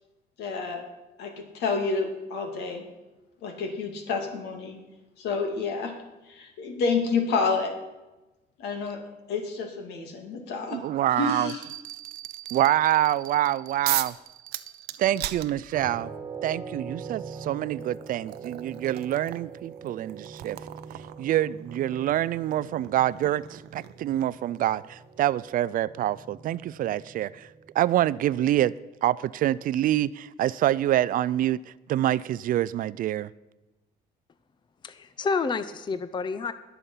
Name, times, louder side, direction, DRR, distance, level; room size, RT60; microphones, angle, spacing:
voice 1, 0.4-0.8 1.2-2.8 3.4-4.8 5.2-5.9 6.3-7.7 8.6-9.0 9.3-10.8 11.2-11.6, left 4 dB, 80° left, 3 dB, 2.6 m, -29 dB
voice 2, 10.7-14.1 15.0-16.1 16.4-20.6 21.2-27.5 27.8-28.7 29.0-31.6 31.9-33.3, right 13 dB, 55° right, 20 dB, 0.4 m, -26 dB
sound 1, 13.9-14.2 14.5-16.1 17.2-17.3 17.8-24.5, right 14 dB, 80° right, 0.7 m, -37 dB
sound 2, 15.7-28.7, right 5 dB, 25° right, 1.4 m, -43 dB
voice 3, 34.8-36.5, left 4 dB, 25° left, 13 dB, 0.6 m, -29 dB
20.5 x 7.0 x 5.7 m, 1.1 s
cardioid pair, 110°, 17 cm